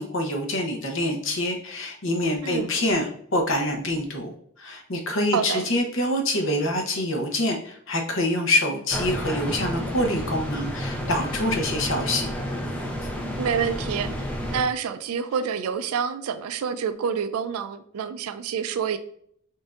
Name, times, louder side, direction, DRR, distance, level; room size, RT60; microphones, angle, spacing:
voice 1, 0.0-4.3 4.6-12.3, left 1 dB, 65° left, 3 dB, 0.8 m, -26 dB
voice 2, 5.3-5.7 13.4-14.1 14.5-19.0, right 7 dB, 85° right, 10 dB, 0.4 m, -27 dB
sound 1, 8.9-14.6, equal, 5° left, 0.5 m, -30 dB
5.4 x 2.6 x 2.4 m, 0.65 s
head